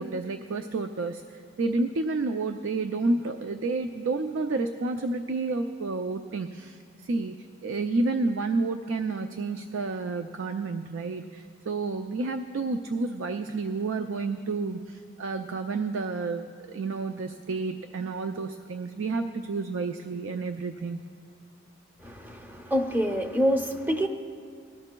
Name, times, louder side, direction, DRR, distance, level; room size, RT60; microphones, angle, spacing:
voice 1, 0.0-7.3 7.6-21.0, right 3 dB, 75° right, 7 dB, 0.4 m, -30 dB
voice 2, 22.0-24.1, equal, 10° right, 4 dB, 0.6 m, -26 dB
19.0 x 12.5 x 2.2 m, 2.4 s
head